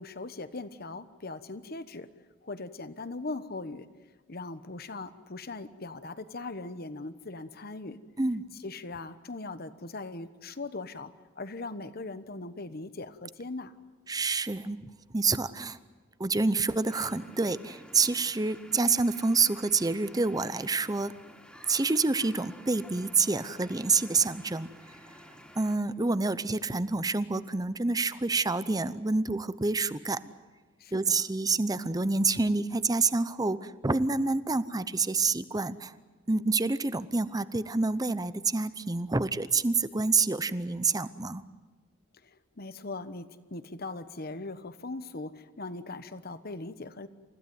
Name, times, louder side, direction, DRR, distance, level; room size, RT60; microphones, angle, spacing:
voice 1, 0.0-2.1 2.4-3.9 4.3-8.0 8.6-13.7 30.8-31.2 36.3-36.5 42.2-47.1, left 3 dB, 50° left, 12 dB, 1.2 m, -40 dB
voice 2, 14.1-14.8 15.1-15.8 16.2-21.1 21.7-24.7 25.6-30.2 30.9-35.9 36.3-41.4, right 3 dB, 20° right, 15 dB, 0.7 m, -27 dB
sound 1, 16.9-25.8, equal, 5° left, 2.8 m, -52 dB
29.0 x 16.0 x 9.4 m, 1.3 s
head